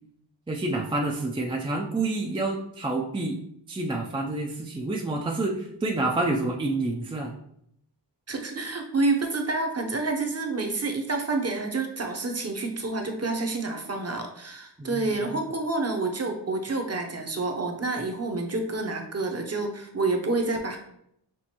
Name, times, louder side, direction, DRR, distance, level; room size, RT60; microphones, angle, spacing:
voice 1, 0.5-3.4 3.7-7.3 14.8-15.4, right 2 dB, 15° right, 0 dB, 0.4 m, -28 dB
voice 2, 8.3-20.8, right 3 dB, 35° right, 3 dB, 0.8 m, -28 dB
6.1 x 2.5 x 2.9 m, 0.74 s
wide cardioid pair, 70°, 43 cm